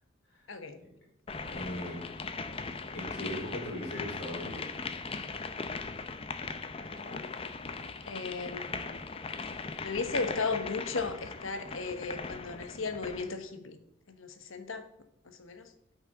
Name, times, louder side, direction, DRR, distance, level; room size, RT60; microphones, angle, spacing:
voice 1, 0.5-0.8 6.8-7.4 8.0-9.0 9.5-13.8 14.1-14.9 15.2-15.7, left 4 dB, 85° left, 8 dB, 1.1 m, -36 dB
sound 1, 1.3-13.3, left 4 dB, 30° left, 0.5 m, -39 dB
voice 2, 1.5-2.0 2.9-4.7, left 1 dB, 55° left, -3 dB, 4.4 m, -38 dB
9.2 x 5.7 x 6.0 m, 0.75 s
head